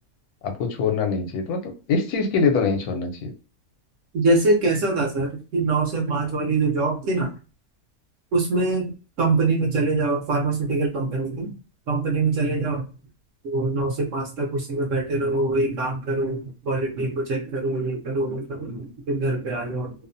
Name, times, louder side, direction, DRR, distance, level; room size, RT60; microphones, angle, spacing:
voice 1, 0.4-3.3, left 5 dB, 75° left, 4 dB, 1.1 m, -24 dB
voice 2, 4.1-7.3 8.3-8.9 9.2-11.5 11.9-12.8 13.4-19.9, right 3 dB, 65° right, 1 dB, 0.9 m, -24 dB
2.8 x 2.1 x 2.5 m, 0.34 s
omnidirectional pair, 1.6 m